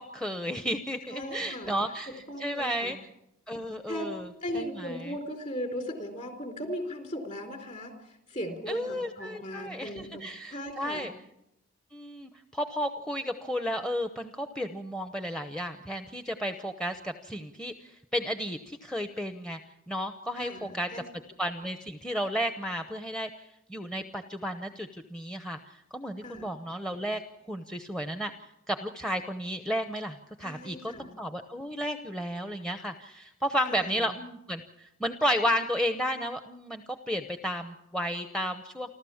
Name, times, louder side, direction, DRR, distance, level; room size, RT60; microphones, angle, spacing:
voice 1, 0.0-3.0 3.5-4.3 4.5-5.2 8.7-11.1 11.9-19.6 19.9-20.9 21.4-27.2 27.5-28.3 28.7-38.9, equal, 5° left, 7 dB, 0.8 m, -33 dB
voice 2, 1.1-1.7 2.1-2.9 3.9-4.1 4.4-11.1 20.4-21.0 26.2-26.5 30.4-31.1 33.7-34.0, equal, 40° left, 5 dB, 4.1 m, -38 dB
29.5 x 13.0 x 7.2 m, 0.83 s
head